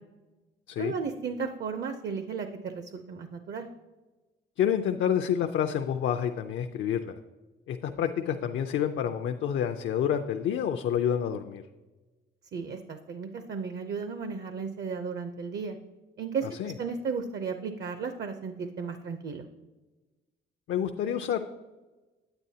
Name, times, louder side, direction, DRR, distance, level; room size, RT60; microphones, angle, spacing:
voice 1, 0.8-3.7 12.5-15.8 16.2-19.5, right 5 dB, 55° right, 8 dB, 0.6 m, -34 dB
voice 2, 4.6-7.1 7.7-11.6 16.6-16.7 20.7-21.4, left 9 dB, 70° left, 6 dB, 0.5 m, -28 dB
9.0 x 9.0 x 2.8 m, 1.2 s
cardioid pair, 90°, 20 cm